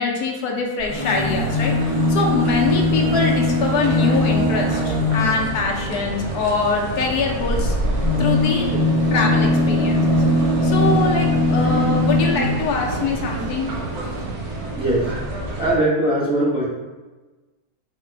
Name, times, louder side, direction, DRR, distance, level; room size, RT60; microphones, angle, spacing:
voice 1, 0.0-1.8 2.1-7.7 8.2-10.2 10.6-13.7, left 4 dB, 80° left, 0 dB, 1.3 m, -24 dB
sound 1, 0.8-5.7 7.3-12.8 13.7-13.8 14.0-14.1, left 1 dB, 30° left, 0.8 m, -20 dB
sound 2, 1.1-15.8, right 2 dB, 70° right, 1.2 m, -30 dB
voice 2, 14.4-15.1 15.6-16.6, right 1 dB, 5° right, -6 dB, 0.7 m, -21 dB
4.1 x 2.9 x 4.5 m, 1.2 s
omnidirectional pair, 1.7 m